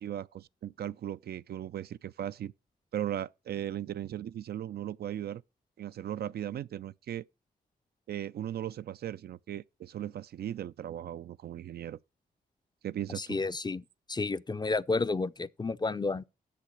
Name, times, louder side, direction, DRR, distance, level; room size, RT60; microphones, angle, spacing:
voice 1, 0.0-2.5 2.9-5.4 5.8-7.2 8.1-12.0 12.8-13.4, right 11 dB, 60° right, 0.4 m, -37 dB
voice 2, 13.2-13.8 14.1-16.2, left 3 dB, 25° left, 0.5 m, -31 dB
7.5 x 6.8 x 6.0 m
supercardioid pair, 40°, 18 cm